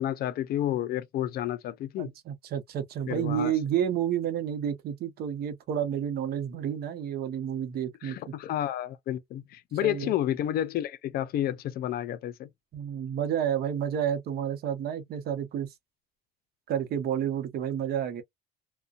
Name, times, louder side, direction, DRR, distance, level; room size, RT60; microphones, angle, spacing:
voice 1, 0.0-2.1 3.1-3.5 8.0-12.5, left 12 dB, 65° left, 0.5 m, -30 dB
voice 2, 2.0-8.2 9.8-10.2 12.7-15.7 16.7-18.2, right 9 dB, 65° right, 0.8 m, -30 dB
2.5 x 2.1 x 2.3 m
cardioid pair, 110°, 17 cm